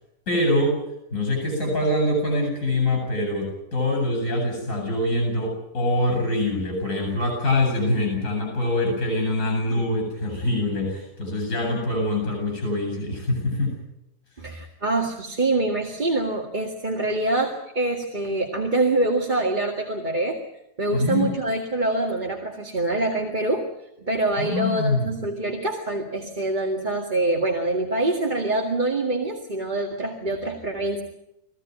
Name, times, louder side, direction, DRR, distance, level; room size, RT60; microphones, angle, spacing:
voice 1, 0.3-0.8 1.1-13.8 20.9-21.3 24.4-25.1, left 1 dB, 50° left, 2 dB, 8.5 m, -24 dB
voice 2, 14.4-20.4 20.8-23.7 24.0-31.0, right 2 dB, 30° right, 0 dB, 2.2 m, -25 dB
22.0 x 16.5 x 9.5 m, 0.85 s
omnidirectional pair, 1.7 m